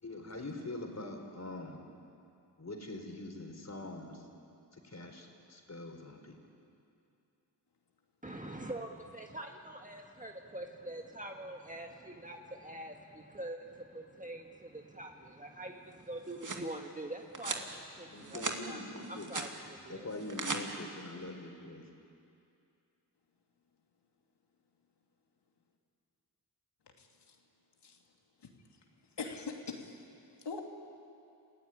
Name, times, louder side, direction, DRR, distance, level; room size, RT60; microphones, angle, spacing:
voice 1, 0.0-1.8 2.6-4.3 4.7-6.4 18.0-19.3 19.9-21.8, left 2 dB, 40° left, 3 dB, 4.3 m, -43 dB
voice 2, 8.2-20.1, right 1 dB, 20° right, 2 dB, 1.7 m, -45 dB
sound 1, 16.0-16.7 17.3-17.7 18.1-18.6 19.0-19.5 20.1-20.6, right 3 dB, 50° right, 2.4 m, -38 dB
voice 3, 27.0-27.4 27.8-28.0 28.4-28.5 29.2-30.0 30.4-30.6, left 4 dB, 85° left, 2 dB, 2.8 m, -42 dB
27.0 x 16.0 x 9.8 m, 2.6 s
cardioid pair, 50°, 40 cm